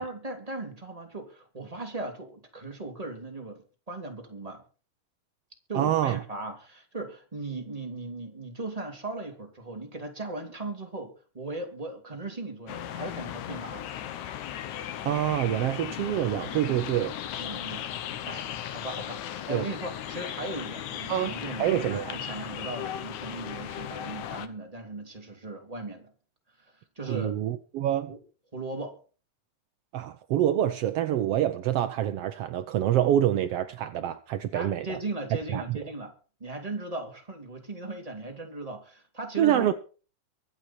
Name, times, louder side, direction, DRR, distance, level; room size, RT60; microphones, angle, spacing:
voice 1, 0.0-4.6 5.7-13.9 17.4-26.1 27.0-27.3 28.1-28.2 28.5-28.9 34.5-36.1 36.4-39.7, right 2 dB, 10° right, 2.8 m, -38 dB
voice 2, 5.7-6.2 15.0-17.1 19.5-19.6 21.1-22.2 27.1-28.1 29.9-35.0 35.5-35.8 39.4-39.7, right 11 dB, 80° right, 1.4 m, -26 dB
sound 1, 12.7-24.5, left 10 dB, 70° left, 2.4 m, -37 dB
23.5 x 8.3 x 4.4 m
omnidirectional pair, 3.7 m